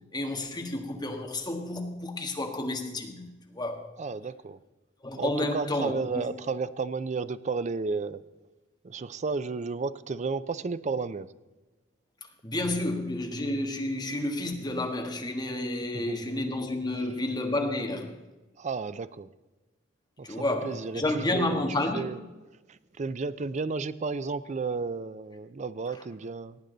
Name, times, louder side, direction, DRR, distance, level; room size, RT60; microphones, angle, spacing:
voice 1, 0.1-3.9 5.0-6.2 12.4-18.2 20.2-22.1, left 1 dB, 20° left, 3 dB, 1.5 m, -30 dB
voice 2, 4.0-4.6 5.2-8.2 8.8-11.3 15.9-16.4 18.6-19.3 20.2-21.6 21.9-22.2 22.7-26.6, right 4 dB, 40° right, 15 dB, 0.4 m, -33 dB
18.0 x 8.9 x 3.9 m, 1.1 s
head